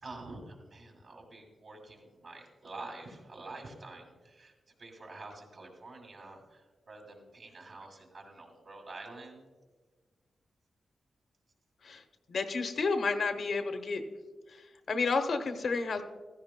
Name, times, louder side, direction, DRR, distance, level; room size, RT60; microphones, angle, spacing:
voice 1, 0.0-4.5 4.8-9.5, right 2 dB, 50° right, 1 dB, 2.5 m, -47 dB
voice 2, 12.3-14.0 14.5-16.0, left 4 dB, 60° left, 7 dB, 0.9 m, -31 dB
15.5 x 15.0 x 2.2 m, 1.3 s
wide cardioid pair, 150°, 0 cm